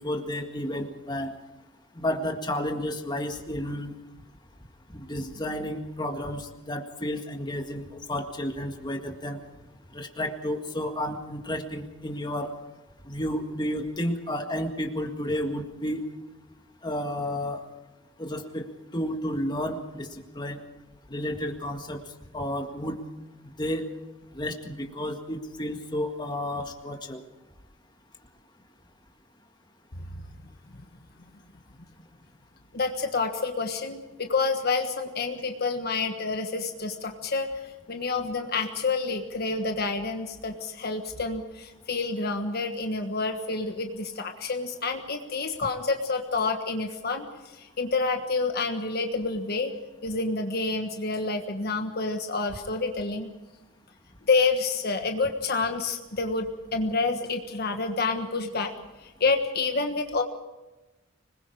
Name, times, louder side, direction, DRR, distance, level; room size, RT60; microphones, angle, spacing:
voice 1, 0.0-1.3 1.9-3.9 4.9-9.4 9.9-12.5 13.0-16.0 16.8-17.6 18.2-18.7 18.9-20.6 21.1-22.0 22.3-23.0 23.6-23.9 24.3-27.2, left 1 dB, 25° left, 4 dB, 1.9 m, -31 dB
voice 2, 32.7-37.5 37.9-47.3 47.5-49.7 50.0-53.3 54.3-58.7 59.0-60.2, left 3 dB, 55° left, 5 dB, 1.4 m, -28 dB
26.0 x 20.5 x 4.8 m, 1.1 s
head